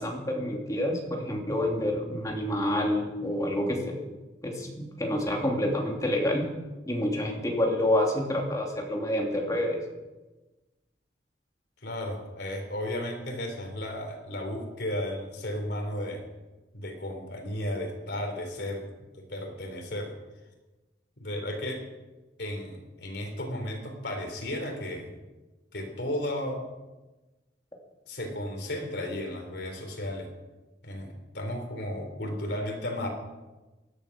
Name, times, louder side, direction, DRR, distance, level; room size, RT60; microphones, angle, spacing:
voice 1, 0.0-4.0 4.4-6.5 6.9-9.8, left 1 dB, 20° left, 0 dB, 2.8 m, -28 dB
voice 2, 11.8-16.2 16.7-18.8 19.1-20.1 21.2-21.8 22.4-25.2 25.7-26.7 28.1-30.3 30.8-33.1, left 1 dB, 70° left, 3 dB, 3.4 m, -34 dB
16.5 x 11.5 x 6.0 m, 1.1 s
head